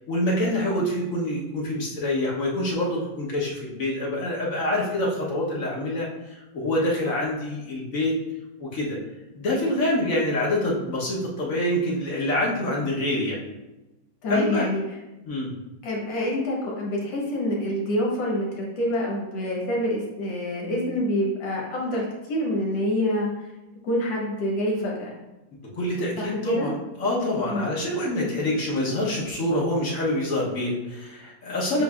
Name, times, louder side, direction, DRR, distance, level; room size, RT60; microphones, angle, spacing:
voice 1, 0.1-8.2 8.6-9.0 9.3-13.4 14.3-14.7 15.3-15.5 25.7-31.8, left 1 dB, 55° left, -4 dB, 1.2 m, -26 dB
voice 2, 14.2-14.8 15.8-23.3 23.8-25.1 26.2-26.7 27.4-27.7 31.7-31.8, left 1 dB, 75° left, -3 dB, 1.8 m, -26 dB
7.7 x 2.6 x 2.3 m, 1.0 s
omnidirectional pair, 2.0 m